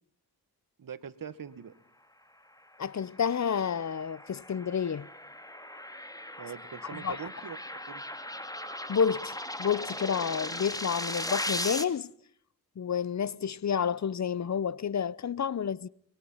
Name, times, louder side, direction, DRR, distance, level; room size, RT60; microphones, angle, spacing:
voice 1, 0.8-1.7 6.4-7.6 7.9-8.0, right 7 dB, 60° right, 1.8 m, -42 dB
voice 2, 2.8-5.1 7.0-7.2 8.9-12.1 12.8-15.9, left 7 dB, 50° left, 0.8 m, -30 dB
sound 1, 3.0-11.8, left 1 dB, 10° left, 2.5 m, -38 dB
26.5 x 21.5 x 5.6 m
cardioid pair, 85°, 37 cm